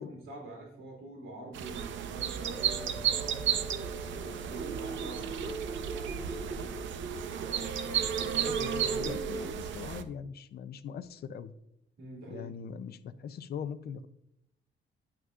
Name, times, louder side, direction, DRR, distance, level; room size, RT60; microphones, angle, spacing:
voice 1, 0.0-3.7 4.5-5.4 12.0-12.5, right 2 dB, 85° right, -1 dB, 2.9 m, -45 dB
sound 1, 1.5-10.0, right 9 dB, 65° right, 0.6 m, -34 dB
sound 2, 2.3-9.5, right 4 dB, 20° right, 0.6 m, -39 dB
voice 2, 8.3-11.5 12.3-14.1, left 7 dB, 50° left, 12 dB, 0.5 m, -41 dB
11.0 x 6.0 x 2.4 m, 0.80 s
cardioid pair, 160°, 21 cm